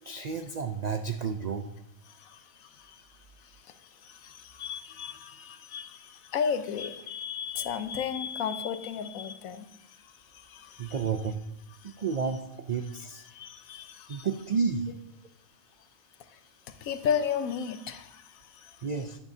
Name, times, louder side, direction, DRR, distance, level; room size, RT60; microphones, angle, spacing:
voice 1, 0.0-1.7 10.8-11.4 11.8-12.4 12.7-13.2 14.1-14.9 18.8-19.2, right 5 dB, 85° right, 6 dB, 0.3 m, -31 dB
voice 2, 2.0-11.0 11.8-12.0 13.0-14.3 16.2-16.4 16.7-18.9, left 7 dB, 85° left, 10 dB, 1.2 m, -35 dB
10.5 x 10.5 x 2.7 m, 0.81 s
omnidirectional pair, 1.4 m